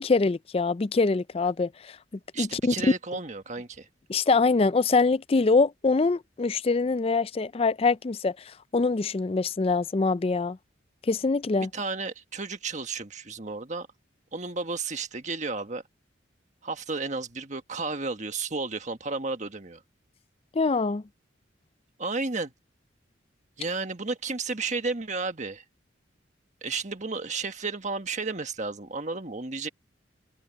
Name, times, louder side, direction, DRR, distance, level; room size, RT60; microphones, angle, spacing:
voice 1, 0.0-2.0 2.4-2.7 4.1-10.6 11.1-11.7 20.5-21.0, left 3 dB, 30° left, 0.4 m, -24 dB
voice 2, 2.3-3.9 11.6-13.9 14.3-15.8 16.6-19.8 22.0-22.5 23.6-25.6 26.6-29.7, right 4 dB, 40° right, 1.5 m, -32 dB
head